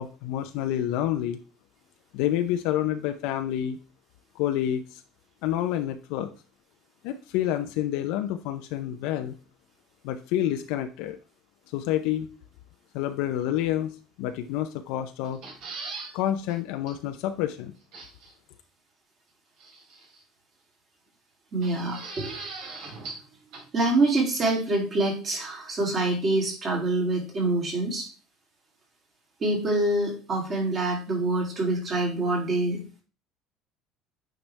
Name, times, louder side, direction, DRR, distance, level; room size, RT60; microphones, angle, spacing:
voice 1, 0.0-1.4 2.1-3.8 4.4-5.0 5.4-6.3 7.0-9.3 10.0-11.2 11.7-12.3 12.9-15.4 16.1-17.7, left 12 dB, 75° left, 7 dB, 0.6 m, -28 dB
sound 1, 15.2-16.1 16.5-16.6 16.9-17.0 17.9-18.3 19.6-20.2 21.6-23.3 23.5-23.6, right 3 dB, 65° right, 3.3 m, -39 dB
voice 2, 21.5-22.3 23.7-28.1 29.4-33.0, right 2 dB, 30° right, -1 dB, 2.7 m, -26 dB
9.0 x 4.9 x 3.2 m, 0.35 s
cardioid pair, 155°, 0 cm